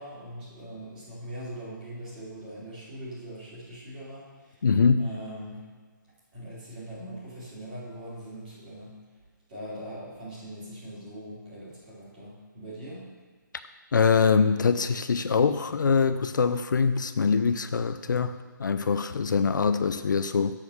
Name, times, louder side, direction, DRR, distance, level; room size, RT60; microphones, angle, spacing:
voice 1, 0.0-4.7 5.0-5.6 6.3-9.0 9.5-13.1, right 1 dB, 25° right, -8 dB, 2.9 m, -41 dB
voice 2, 4.6-5.1 13.9-20.6, left 5 dB, 65° left, 10 dB, 0.5 m, -23 dB
7.2 x 6.4 x 6.3 m, 1.5 s
hypercardioid pair, 170°, 11 cm